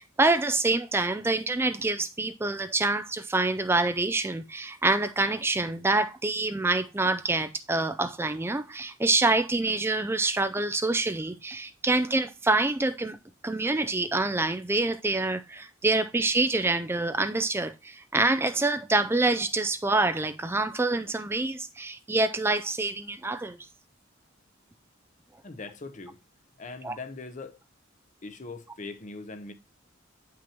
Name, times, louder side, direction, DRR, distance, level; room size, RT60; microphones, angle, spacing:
voice 1, 0.0-13.2 13.4-23.6 26.8-27.0, right 2 dB, 10° right, 0.4 m, -26 dB
voice 2, 25.4-26.2 26.6-27.6 28.2-29.5, left 3 dB, 40° left, 0.8 m, -41 dB
8.7 x 6.0 x 2.9 m
head